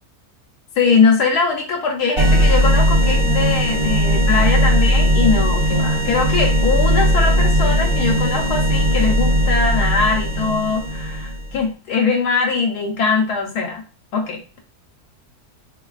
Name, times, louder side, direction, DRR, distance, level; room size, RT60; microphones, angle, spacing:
voice 1, 0.8-13.8 14.1-14.6, left 5 dB, 80° left, 1 dB, 1.2 m, -21 dB
sound 1, 2.2-11.6, equal, 50° right, 0.7 m, -17 dB
3.8 x 2.9 x 2.4 m, 0.35 s
omnidirectional pair, 1.7 m